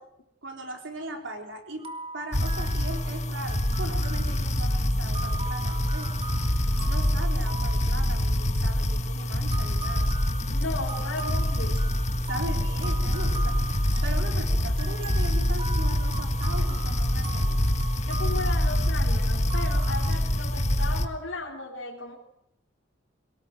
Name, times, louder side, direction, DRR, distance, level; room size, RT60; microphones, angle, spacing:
voice 1, 0.4-1.9 2.1-6.2 6.8-10.1 12.3-13.7 14.0-17.6, right 2 dB, 70° right, 3 dB, 4.1 m, -39 dB
sound 1, 1.8-8.9 9.5-20.2, right 3 dB, 30° right, 1.9 m, -41 dB
sound 2, 2.3-21.1, left 1 dB, 35° left, 1.6 m, -25 dB
voice 2, 10.5-12.0 18.0-22.1, left 2 dB, 85° left, -2 dB, 3.4 m, -35 dB
sound 3, 11.2-16.5, equal, 50° right, 2.5 m, -48 dB
23.5 x 18.0 x 7.8 m, 0.79 s
head